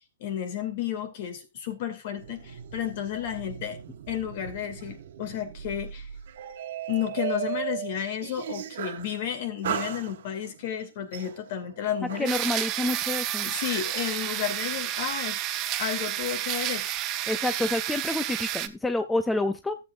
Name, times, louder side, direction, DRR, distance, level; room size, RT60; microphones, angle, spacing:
voice 1, 0.2-3.8 4.1-6.1 6.9-12.3 13.4-15.4 15.8-16.9, left 9 dB, 45° left, 2.4 m, -32 dB
sound 1, 2.2-9.1 9.6-10.6 11.1-12.7, right 10 dB, 60° right, 1.1 m, -37 dB
voice 2, 12.2-13.5 17.3-19.8, left 2 dB, 5° left, 0.5 m, -28 dB
sound 2, 12.3-18.7, right 13 dB, 30° right, 0.8 m, -30 dB
14.0 x 7.9 x 2.6 m
hypercardioid pair, 150°, 0 cm